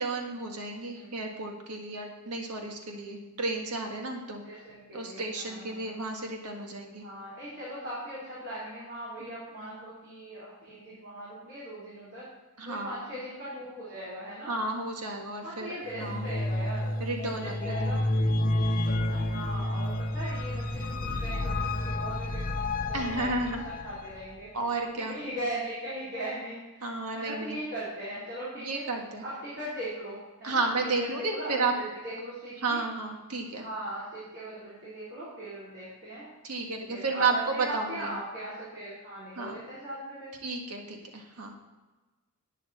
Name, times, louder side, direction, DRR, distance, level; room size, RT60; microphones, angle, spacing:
voice 1, 0.0-4.4 4.9-7.0 9.6-9.7 12.6-13.0 14.5-16.3 17.0-18.0 22.9-23.6 24.5-25.2 26.8-27.6 28.6-29.2 30.4-31.7 32.6-33.6 36.4-38.1 39.4-39.5 40.4-41.5, right 3 dB, 90° right, 2 dB, 1.6 m, -32 dB
voice 2, 4.4-5.9 7.0-12.3 12.6-14.5 15.4-16.9 17.3-18.0 19.1-28.8 29.2-30.6 31.0-32.8 33.5-36.3 36.9-40.3, right 1 dB, 50° right, -9 dB, 3.7 m, -39 dB
sound 1, 15.9-24.2, left 1 dB, 40° left, 0.6 m, -30 dB
11.0 x 9.3 x 4.2 m, 1.2 s
head